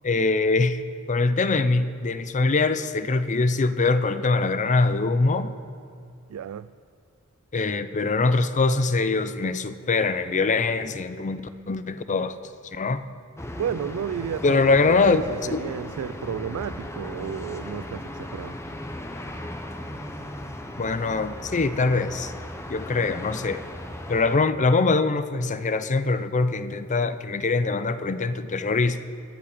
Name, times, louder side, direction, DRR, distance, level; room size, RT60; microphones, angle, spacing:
voice 1, 0.0-0.8 1.1-5.6 7.5-11.4 11.7-12.4 12.7-13.0 14.4-15.2 15.5-15.6 20.8-22.3 22.7-23.6 24.1-29.0, left 3 dB, 35° left, 12 dB, 0.6 m, -23 dB
voice 2, 6.3-6.7 13.5-18.6, right 8 dB, 75° right, 14 dB, 0.3 m, -32 dB
sound 1, 13.4-24.4, left 1 dB, 15° left, 1.0 m, -37 dB
24.0 x 9.8 x 5.0 m, 2.4 s
head